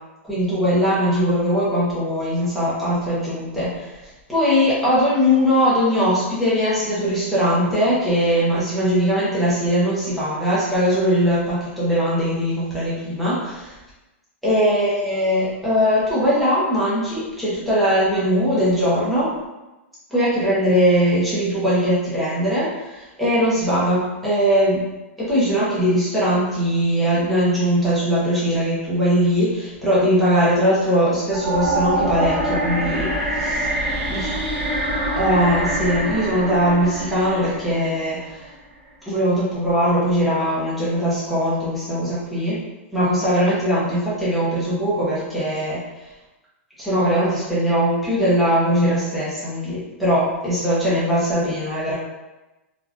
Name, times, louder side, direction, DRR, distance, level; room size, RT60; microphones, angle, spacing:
voice 1, 0.2-13.8 14.4-19.3 20.1-24.8 25.2-33.7 34.1-34.4 35.1-38.5 39.0-42.6 42.9-45.8 46.8-52.0, equal, ahead, -10 dB, 0.7 m, -20 dB
sound 1, 31.3-38.4, right 1 dB, 55° right, 1.3 m, -25 dB
3.5 x 2.4 x 2.4 m, 1.1 s
supercardioid pair, 175°, 7 cm